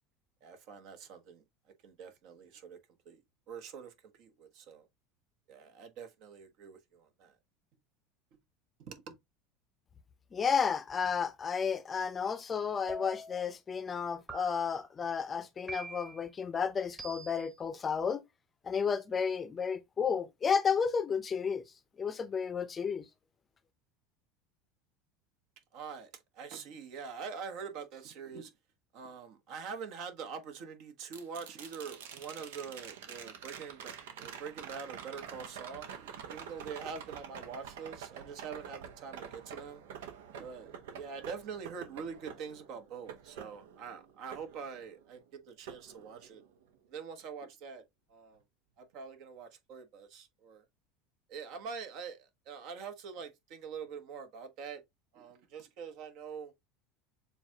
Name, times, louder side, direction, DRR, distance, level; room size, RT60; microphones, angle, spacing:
voice 1, 0.4-1.4 1.8-2.8 3.0-3.2 3.5-4.9 5.5-7.3 8.8-9.2 25.7-28.5 28.9-39.8 40.4-46.4 46.9-47.8 48.1-48.4 48.8-50.6 51.3-54.8 55.1-56.5, right 6 dB, 60° right, 1.2 m, -45 dB
voice 2, 10.3-18.2 18.6-21.6 22.0-23.1, left 6 dB, 25° left, 0.6 m, -32 dB
sound 1, 12.9-13.5 14.3-14.9 15.7-16.3 17.0-17.6, right 1 dB, 15° right, 1.1 m, -44 dB
sound 2, 31.1-45.2 45.7-46.7 48.9-49.0, right 8 dB, 90° right, 0.8 m, -47 dB
7.0 x 2.4 x 2.8 m
supercardioid pair, 110°, 0 cm